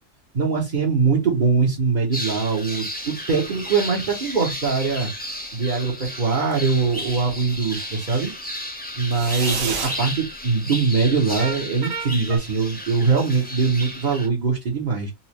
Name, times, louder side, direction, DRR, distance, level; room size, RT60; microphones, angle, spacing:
voice 1, 0.3-5.1 5.5-8.3 8.6-15.1, right 4 dB, 40° right, 0.9 m, -22 dB
sound 1, 2.1-14.3, left 1 dB, 10° left, 0.7 m, -33 dB
sound 2, 6.8-7.4 9.1-10.0 11.4-12.4, right 4 dB, 75° right, 1.3 m, -30 dB
4.1 x 2.4 x 2.9 m
omnidirectional pair, 1.4 m